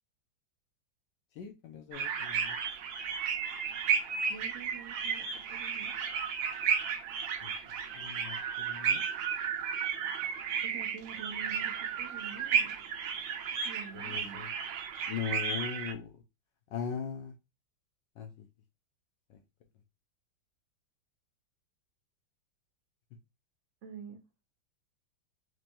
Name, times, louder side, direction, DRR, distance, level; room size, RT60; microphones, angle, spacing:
voice 1, 1.3-2.6 7.4-9.0 13.9-14.5 15.1-16.2 16.7-17.4 18.1-18.5 19.3-19.4, left 7 dB, 75° left, 1.3 m, -40 dB
sound 1, 1.9-15.9, right 7 dB, 90° right, 1.4 m, -33 dB
voice 2, 4.3-5.9 10.6-12.8 13.6-14.5 23.8-24.2, right 7 dB, 55° right, 0.8 m, -47 dB
4.6 x 2.8 x 2.6 m
omnidirectional pair, 2.0 m